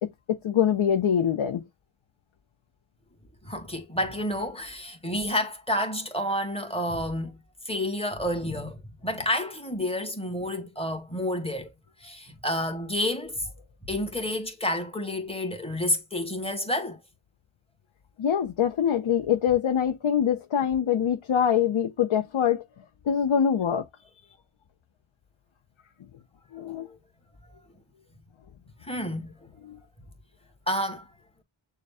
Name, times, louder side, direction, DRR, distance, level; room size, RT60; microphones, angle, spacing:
voice 1, 0.0-1.6 18.2-22.6 23.1-23.8 26.5-26.9 29.6-29.8, left 8 dB, 75° left, 0.8 m, -24 dB
voice 2, 3.4-7.3 7.6-11.7 12.0-13.5 13.8-17.0 26.8-27.0 28.8-29.3 30.7-31.1, left 1 dB, 10° left, 1.7 m, -30 dB
6.6 x 2.4 x 3.4 m
wide cardioid pair, 75°, 47 cm